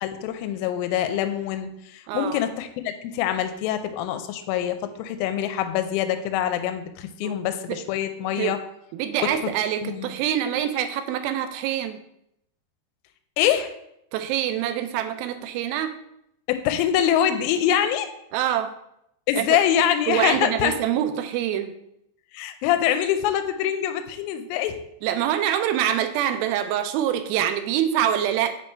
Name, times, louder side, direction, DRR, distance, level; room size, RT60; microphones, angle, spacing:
voice 1, 0.0-8.6 9.2-9.3 9.8-10.1 13.4-13.7 16.5-18.1 19.3-20.8 22.3-24.8, left 10 dB, 80° left, 8 dB, 2.2 m, -24 dB
voice 2, 2.1-2.4 7.2-7.4 7.7-7.8 8.4-8.6 8.9-12.0 14.1-16.0 18.3-18.7 19.4-19.6 20.1-21.7 25.0-28.6, right 10 dB, 80° right, 8 dB, 2.3 m, -25 dB
7.7 x 3.1 x 4.4 m, 0.77 s
omnidirectional pair, 4.5 m